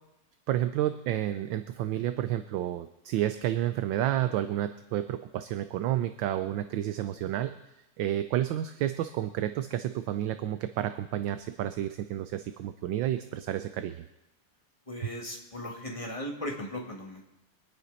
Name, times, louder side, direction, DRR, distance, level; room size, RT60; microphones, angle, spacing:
voice 1, 0.5-7.5 8.0-14.0, right 12 dB, 75° right, 10 dB, 1.2 m, -30 dB
voice 2, 14.9-17.2, left 1 dB, 15° left, 0 dB, 1.9 m, -37 dB
24.0 x 9.6 x 4.1 m, 0.93 s
omnidirectional pair, 2.4 m